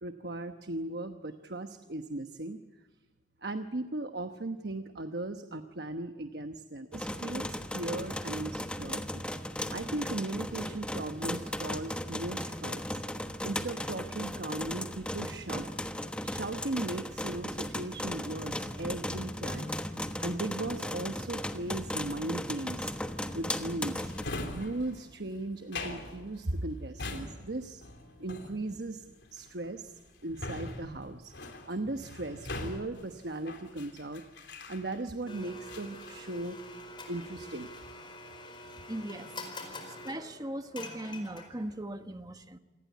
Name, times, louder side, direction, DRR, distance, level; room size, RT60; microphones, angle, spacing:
voice 1, 0.0-2.6 3.4-9.2 9.7-13.0 13.4-15.7 16.2-19.8 20.2-22.9 23.3-24.1 24.5-27.8 28.2-29.0 29.3-31.3 31.7-34.2 34.7-36.6 37.1-37.7 39.6-39.8, right 2 dB, 65° right, 7 dB, 1.1 m, -37 dB
sound 1, 6.9-24.2, left 1 dB, 5° left, 1.2 m, -36 dB
Drawer open or close, 24.0-35.2 35.7-37.0 37.3-37.8, left 2 dB, 90° left, 3.3 m, -43 dB
Domestic sounds home sounds, 35.3-41.8, left 1 dB, 30° left, 4.6 m, -45 dB
voice 2, 38.9-39.3 39.9-42.6, right 1 dB, 20° right, 7 dB, 1.3 m, -39 dB
28.0 x 19.0 x 8.4 m, 1.2 s
head